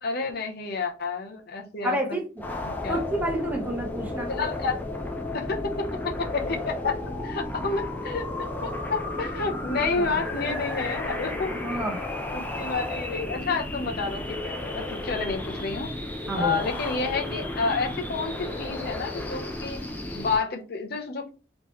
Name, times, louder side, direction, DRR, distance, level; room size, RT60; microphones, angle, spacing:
voice 1, 0.0-2.2 2.6-3.0 4.3-4.8 5.3-11.5 12.3-15.9 16.3-19.8 20.1-21.3, left 4 dB, 55° left, 3 dB, 0.8 m, -30 dB
voice 2, 1.8-2.4 2.9-4.3 10.0-10.1 11.5-12.0 16.3-16.6, right 1 dB, 10° right, 1 dB, 1.0 m, -29 dB
sound 1, 2.4-20.4, left 2 dB, 10° left, 0.6 m, -33 dB
3.7 x 3.0 x 3.0 m, 0.32 s
head